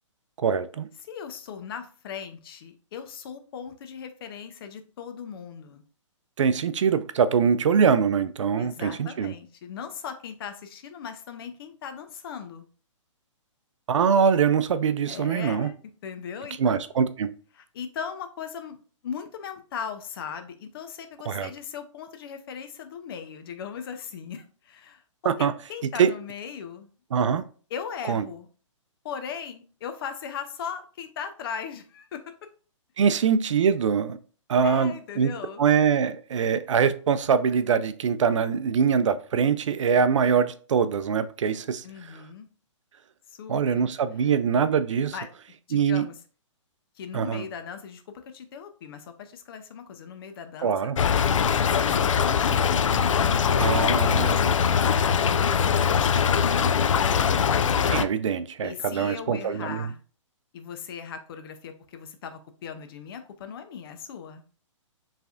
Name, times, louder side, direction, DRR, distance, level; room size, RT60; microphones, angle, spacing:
voice 1, 0.4-0.9 6.4-9.3 13.9-15.7 16.6-17.3 21.3-21.5 25.2-25.5 26.0-26.1 27.1-27.4 28.1-28.2 33.0-34.2 34.5-35.3 35.6-41.8 43.5-45.1 45.7-46.0 47.1-47.5 50.6-51.0 53.6-54.4 57.9-59.9, right 6 dB, 70° right, 0.5 m, -23 dB
voice 2, 1.0-5.8 8.6-12.6 15.1-15.7 16.0-16.8 17.5-18.8 19.0-25.3 25.7-26.9 27.7-28.5 29.0-32.2 33.0-33.3 34.6-35.6 41.8-42.5 43.3-43.9 44.2-44.4 45.1-45.3 45.7-46.2 47.0-48.0 48.3-50.7 51.1-52.5 53.3-57.2 58.6-60.0 60.5-64.4, left 7 dB, 45° left, 0.7 m, -38 dB
Stream / Trickle dribble, 51.0-58.0, left 7 dB, 75° left, 0.4 m, -22 dB
4.6 x 3.4 x 2.5 m
hypercardioid pair, 135°, 16 cm